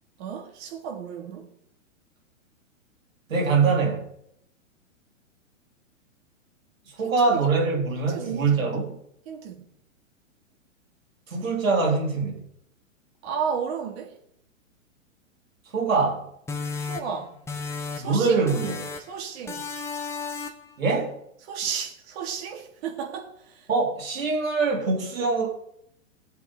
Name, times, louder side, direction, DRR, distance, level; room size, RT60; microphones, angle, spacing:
voice 1, 0.2-1.5 7.0-7.5 8.0-8.7 9.2-9.7 13.2-14.2 16.8-17.3 18.0-18.5 19.0-19.7 21.4-23.7, right 7 dB, 50° right, 3.4 m, -33 dB
voice 2, 3.3-4.1 7.0-8.9 11.3-12.4 15.7-16.2 18.0-18.9 20.8-21.2 23.7-25.5, right 4 dB, 85° right, 4.4 m, -23 dB
sound 1, 16.5-18.2 18.5-19.2 19.5-20.7, left 4 dB, 5° left, 1.1 m, -34 dB
21.0 x 7.6 x 4.2 m
hypercardioid pair, 130°, 39 cm